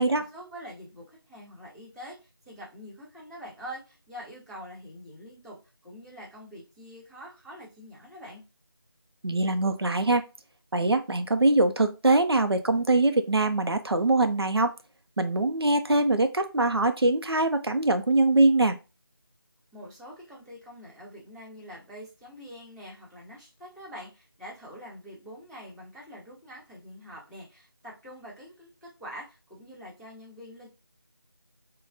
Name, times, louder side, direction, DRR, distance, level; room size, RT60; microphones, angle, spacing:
voice 1, 0.0-5.6 5.8-8.4 19.7-30.7, equal, 5° right, -16 dB, 0.5 m, -45 dB
voice 2, 9.2-10.2 10.7-14.7 15.2-18.8, right 2 dB, 80° right, 8 dB, 0.6 m, -23 dB
3.7 x 2.2 x 3.8 m, 0.29 s
figure-of-eight pair, 165°, 13 cm